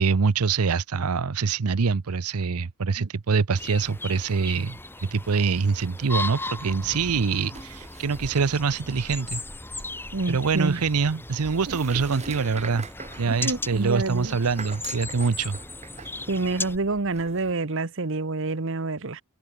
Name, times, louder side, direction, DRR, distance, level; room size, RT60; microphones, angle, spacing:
voice 1, 0.0-9.4 10.3-12.9 13.2-15.6, right 5 dB, 85° right, 0.7 m, -25 dB
sound 1, 3.6-16.8, left 2 dB, 10° left, 3.0 m, -37 dB
sound 2, 7.5-17.5, right 3 dB, 30° right, 2.4 m, -44 dB
voice 2, 10.1-10.8 11.7-11.8 12.7-12.8 13.2-14.4 16.3-19.2, right 3 dB, 60° right, 1.2 m, -28 dB
head